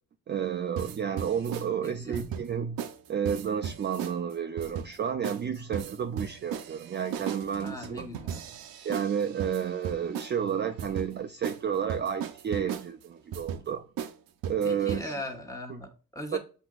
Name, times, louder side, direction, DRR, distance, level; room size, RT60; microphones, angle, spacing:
voice 1, 0.3-2.8 3.1-8.1 8.8-13.9 14.4-15.2 16.3-16.4, right 8 dB, 30° right, 0.4 m, -31 dB
sound 1, 0.8-1.7 2.1-2.5 2.8-3.0 3.2-4.1 4.6-5.0 5.2-5.4 5.7-10.4 10.8-11.1 11.4-11.6 11.9-12.9 13.3-13.6 14.0-14.1 14.4-15.0, right 8 dB, 75° right, 0.7 m, -36 dB
voice 2, 1.8-2.2 7.6-8.6 14.6-16.4, left 1 dB, 10° left, 1.2 m, -39 dB
6.1 x 2.9 x 2.3 m
supercardioid pair, 65°, 35 cm